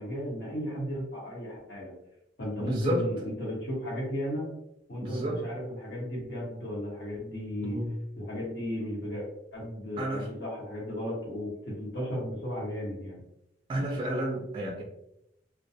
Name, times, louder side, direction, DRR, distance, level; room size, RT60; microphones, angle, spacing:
voice 1, 0.0-1.9 2.4-4.5 4.9-7.8 8.2-9.3 9.5-13.2, equal, 65° left, -5 dB, 1.1 m, -35 dB
voice 2, 2.6-3.1 5.0-5.4 7.6-7.9 10.0-10.3 13.7-14.8, right 1 dB, 25° right, -1 dB, 0.3 m, -31 dB
2.3 x 2.2 x 2.6 m, 0.82 s
head